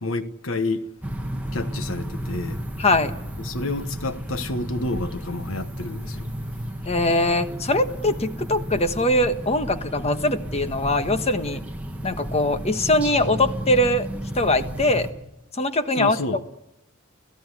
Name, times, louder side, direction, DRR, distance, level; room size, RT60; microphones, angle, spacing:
voice 1, 0.0-0.9 1.5-2.6 3.4-6.3 16.0-16.4, left 2 dB, 75° left, 1.3 m, -29 dB
sound 1, 1.0-15.1, equal, 5° right, 1.9 m, -33 dB
voice 2, 2.8-3.1 6.8-11.6 12.0-14.1 14.3-15.1 15.6-16.2, left 1 dB, 30° left, 1.3 m, -22 dB
29.5 x 16.0 x 9.7 m
head